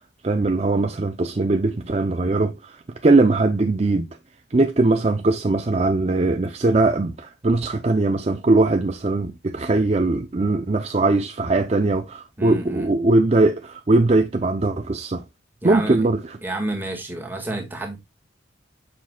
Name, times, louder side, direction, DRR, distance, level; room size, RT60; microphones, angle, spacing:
voice 1, 0.2-4.1 4.5-15.2 15.6-16.4, right 2 dB, 35° right, 0.5 m, -20 dB
voice 2, 12.4-12.9 15.6-16.0 16.4-18.0, right 2 dB, 10° right, 1.6 m, -29 dB
7.2 x 6.0 x 2.2 m
head